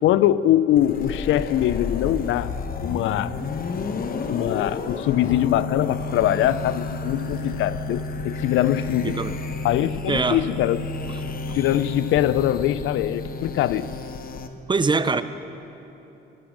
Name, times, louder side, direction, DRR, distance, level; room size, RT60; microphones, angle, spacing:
voice 1, 0.0-2.5 2.8-3.3 4.3-9.2 9.6-10.9 11.5-13.9, left 12 dB, 80° left, 16 dB, 0.4 m, -22 dB
sound 1, 0.8-14.5, left 3 dB, 45° left, 0.9 m, -31 dB
voice 2, 9.0-9.4 10.1-10.4 14.7-15.2, right 4 dB, 25° right, 12 dB, 0.5 m, -22 dB
17.5 x 10.5 x 5.1 m, 2.9 s
cardioid pair, 90°, 20 cm